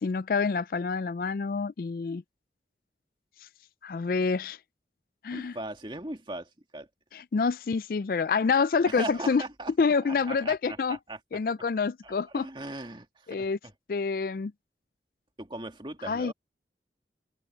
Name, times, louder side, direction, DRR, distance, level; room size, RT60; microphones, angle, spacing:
voice 1, 0.0-2.2 3.8-4.6 5.2-5.5 7.1-9.4 9.8-11.0 11.3-12.5 13.3-13.6 13.9-14.5 16.1-16.3, left 5 dB, 50° left, 0.4 m, -27 dB
voice 2, 5.3-6.9 8.8-9.7 10.0-11.2 12.0-13.7 15.4-16.3, right 1 dB, 25° right, 2.1 m, -39 dB
open air
head